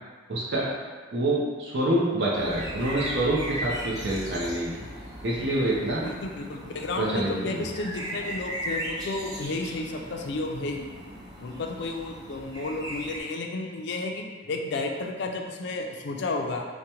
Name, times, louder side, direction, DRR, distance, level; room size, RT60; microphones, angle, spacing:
voice 1, 0.3-0.6 1.1-4.7 5.2-6.0 7.0-7.6, right 1 dB, 65° right, -5 dB, 0.6 m, -26 dB
sound 1, 2.3-13.2, equal, 20° right, 0.6 m, -38 dB
voice 2, 6.0-10.9 11.4-16.7, left 2 dB, 60° left, 2 dB, 0.4 m, -32 dB
4.8 x 2.1 x 2.8 m, 1.4 s
head